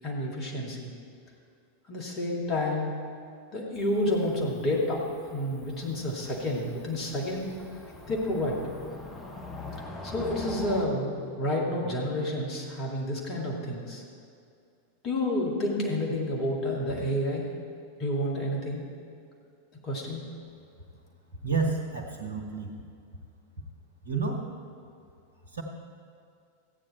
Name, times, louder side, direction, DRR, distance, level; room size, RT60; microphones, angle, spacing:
voice 1, 0.0-0.9 1.9-2.9 3.5-7.5 8.1-8.6 10.0-14.0 15.0-17.5 18.0-18.8 19.8-20.3, left 1 dB, 35° left, -2 dB, 2.3 m, -29 dB
Cricket / Motor vehicle (road), 3.8-10.9, left 2 dB, 15° left, 1.2 m, -43 dB
voice 2, 21.4-22.7 24.0-24.4 25.5-25.6, right 4 dB, 75° right, 2 dB, 1.4 m, -29 dB
14.5 x 8.9 x 4.3 m, 2.4 s
figure-of-eight pair, 90°, 0 cm